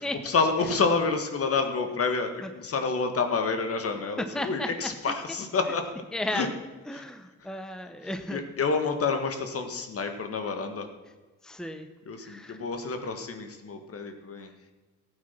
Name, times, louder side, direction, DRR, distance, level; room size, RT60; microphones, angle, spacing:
voice 1, 0.2-5.9 6.3-6.5 6.9-7.0 7.4-7.5 8.0-10.9 12.1-14.5, left 4 dB, 50° left, 6 dB, 1.9 m, -28 dB
voice 2, 4.2-4.7 6.1-6.5 6.9-8.4 11.4-11.9 12.2-12.6, left 1 dB, ahead, 8 dB, 0.9 m, -34 dB
14.5 x 8.9 x 6.0 m, 1.3 s
cardioid pair, 90°, 30 cm